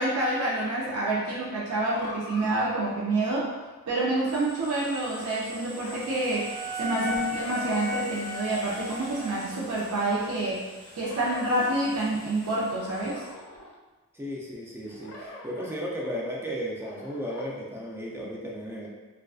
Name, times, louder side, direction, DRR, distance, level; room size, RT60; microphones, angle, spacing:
voice 1, 0.0-3.5 3.9-10.6 10.9-13.2, right 2 dB, 80° right, -6 dB, 0.5 m, -28 dB
sound 1, 1.9-2.7 4.1-4.4 5.7-6.1 7.4-8.2 9.5-10.1 11.1-11.7 12.7-13.7 14.9-15.8 16.8-17.5, left 1 dB, 80° left, 0.5 m, -44 dB
sound 2, 4.3-13.3, right 1 dB, 5° left, 1.0 m, -45 dB
Wind instrument woodwind instrument, 5.4-9.7, left 3 dB, 45° right, 0.7 m, -35 dB
voice 2, 14.1-18.9, equal, 10° right, -3 dB, 0.3 m, -35 dB
2.4 x 2.3 x 2.3 m, 1.2 s
head